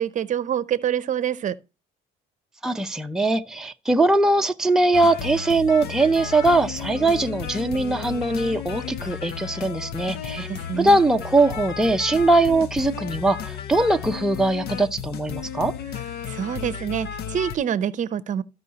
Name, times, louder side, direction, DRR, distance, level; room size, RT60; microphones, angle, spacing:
voice 1, 0.0-1.5 10.5-11.0 16.2-18.4, right 9 dB, 45° right, 0.7 m, -26 dB
voice 2, 2.6-10.5 10.8-15.7, right 2 dB, 5° right, 0.6 m, -21 dB
sound 1, 4.9-17.6, left 8 dB, 75° left, 0.9 m, -33 dB
14.0 x 5.5 x 2.8 m
cardioid pair, 110°, 17 cm